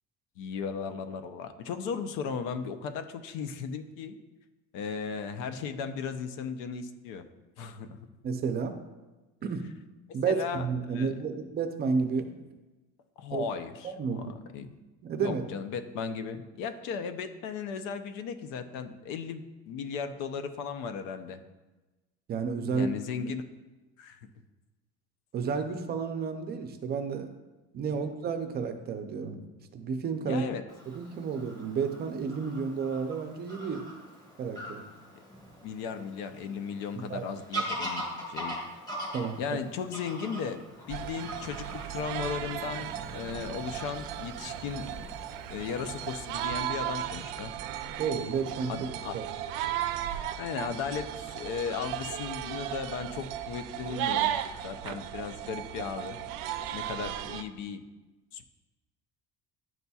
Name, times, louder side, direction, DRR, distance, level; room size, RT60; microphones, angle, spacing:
voice 1, 0.4-4.2 4.7-7.3 7.6-8.0 10.2-10.7 10.9-11.1 13.2-14.7 15.2-21.4 22.6-23.4 24.0-24.2 27.9-28.0 30.2-30.6 35.6-38.6 39.4-40.6 40.9-45.1 45.5-47.5 48.7-49.2 50.4-56.2 56.7-57.8 58.3-58.4, left 6 dB, 85° left, 9 dB, 0.6 m, -36 dB
voice 2, 8.2-8.8 9.4-9.6 10.1-12.3 13.3-13.4 13.8-14.3 15.0-15.4 22.3-22.9 25.3-27.3 27.7-29.4 29.7-30.4 30.9-33.9 34.4-34.8 37.1-37.2 37.6-37.7 39.1-39.6 48.0-48.7 49.1-49.3, right 5 dB, 30° right, 7 dB, 0.5 m, -31 dB
Fowl / Bird vocalization bird call bird song, 30.7-46.4, right 1 dB, 10° left, 1.4 m, -42 dB
sound 1, 40.9-57.4, right 11 dB, 85° right, 0.5 m, -35 dB
10.5 x 4.1 x 2.3 m, 1.1 s
cardioid pair, 155°, 31 cm